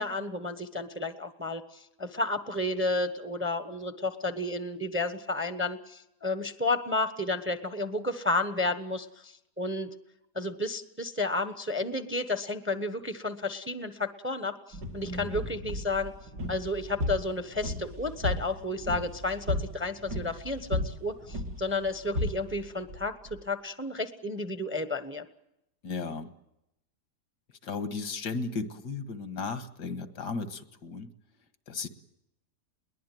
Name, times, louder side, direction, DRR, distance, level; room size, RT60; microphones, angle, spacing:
voice 1, 0.0-9.9 10.3-16.1 16.5-25.2, left 2 dB, 10° right, 10 dB, 0.9 m, -32 dB
sound 1, 14.7-23.4, left 1 dB, 70° right, 2.8 m, -35 dB
voice 2, 25.8-26.3 27.6-31.1 31.7-31.9, left 4 dB, 80° left, 10 dB, 2.0 m, -35 dB
22.0 x 19.5 x 9.3 m, 0.85 s
omnidirectional pair, 1.8 m